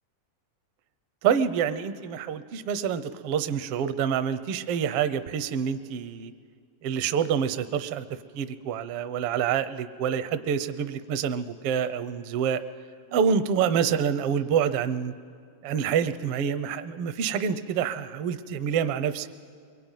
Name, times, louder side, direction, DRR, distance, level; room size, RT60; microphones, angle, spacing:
voice 1, 1.2-6.3 6.8-8.0 8.3-12.6 13.1-15.1 15.6-19.3, right 7 dB, 70° right, 12 dB, 1.4 m, -27 dB
23.5 x 23.0 x 9.1 m, 2.1 s
omnidirectional pair, 3.6 m